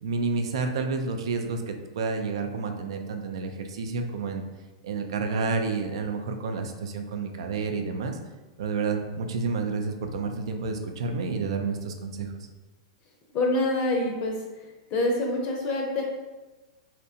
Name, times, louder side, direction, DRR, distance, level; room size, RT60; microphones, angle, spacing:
voice 1, 0.0-4.5 4.8-8.2 8.6-12.5, right 4 dB, 70° right, 5 dB, 0.4 m, -30 dB
voice 2, 13.3-14.4 14.9-16.0, left 2 dB, 40° left, 0 dB, 0.5 m, -25 dB
2.7 x 2.1 x 2.7 m, 1.2 s
hypercardioid pair, 110°, 3 cm